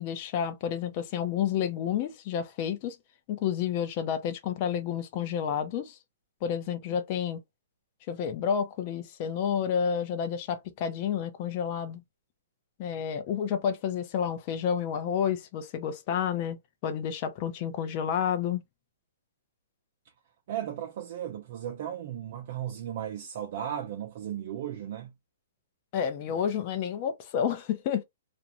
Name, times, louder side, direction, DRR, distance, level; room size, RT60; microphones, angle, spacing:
voice 1, 0.0-3.0 3.3-6.0 6.4-7.4 8.1-12.0 12.8-16.6 16.8-18.6 25.9-28.0, left 8 dB, 35° left, 0.6 m, -30 dB
voice 2, 20.5-25.1 26.3-26.4, right 10 dB, 45° right, 0.6 m, -36 dB
2.5 x 2.1 x 2.9 m
hypercardioid pair, 160°, 0 cm